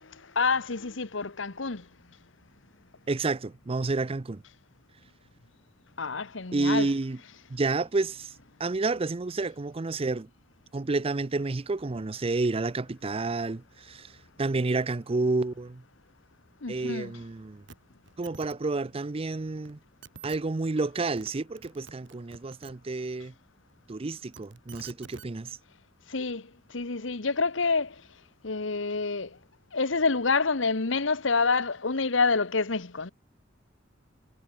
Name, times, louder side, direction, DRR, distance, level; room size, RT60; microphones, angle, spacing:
voice 1, 0.0-1.9 6.0-6.9 16.6-17.1 26.1-28.0 28.4-29.4 29.7-33.1, left 4 dB, 75° left, 1.3 m, -28 dB
voice 2, 3.1-4.4 6.5-7.2 7.5-8.3 8.6-10.3 10.7-14.1 14.4-15.8 16.7-17.6 18.2-19.8 20.2-23.3 23.9-25.6, right 3 dB, 30° right, 0.5 m, -30 dB
sound 1, 17.7-17.8 18.1-18.6 19.7-19.8 20.0-20.4 21.0-21.3 21.6-22.7 24.1-25.3 26.3-26.4, right 4 dB, 65° right, 5.3 m, -48 dB
head